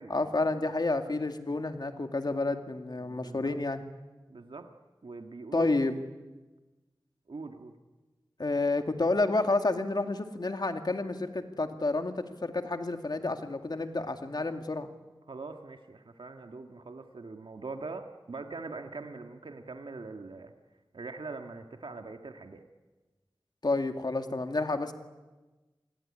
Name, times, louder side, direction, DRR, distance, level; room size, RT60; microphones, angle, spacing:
voice 1, 0.1-3.8 5.5-6.0 8.4-14.9 23.6-24.9, left 2 dB, 55° left, 6 dB, 2.3 m, -30 dB
voice 2, 3.0-3.6 4.3-4.7 5.0-5.7 7.3-7.7 15.3-20.5 20.9-22.6, right 3 dB, 80° right, 5 dB, 1.9 m, -42 dB
28.0 x 21.0 x 9.9 m, 1.2 s
wide cardioid pair, 65°, 9 cm